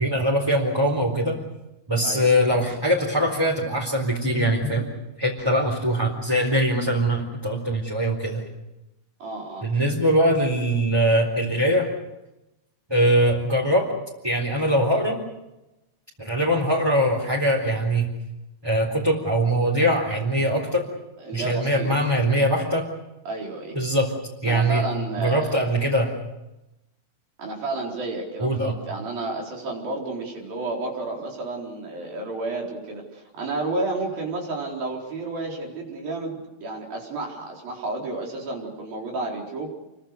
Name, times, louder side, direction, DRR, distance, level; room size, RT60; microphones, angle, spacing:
voice 1, 0.0-1.4 1.9-4.9 5.2-8.4 9.6-11.9 12.9-13.9 14.2-15.2 16.2-18.1 18.6-20.9 21.3-22.8 23.7-24.1 24.4-24.8 25.2-26.1 28.4-28.7, equal, 5° right, -3 dB, 3.7 m, -22 dB
voice 2, 9.2-9.7 21.2-21.9 23.3-23.8 24.4-25.5 27.4-39.7, right 2 dB, 60° right, -1 dB, 6.0 m, -31 dB
29.0 x 23.5 x 6.7 m, 0.95 s
omnidirectional pair, 4.7 m